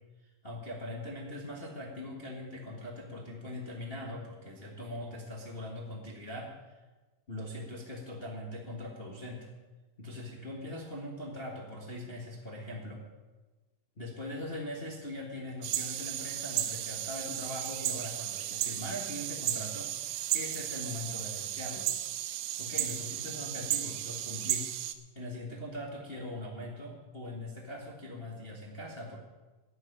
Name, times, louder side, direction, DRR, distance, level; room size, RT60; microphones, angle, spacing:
voice 1, 0.4-6.8 7.3-9.5 10.0-13.0 14.0-21.9 22.6-24.7 25.1-29.2, left 1 dB, 40° left, -2 dB, 0.8 m, -41 dB
sound 1, 15.6-24.9, right 12 dB, 80° right, 2.3 m, -34 dB
11.0 x 8.0 x 9.9 m, 1.2 s
omnidirectional pair, 4.1 m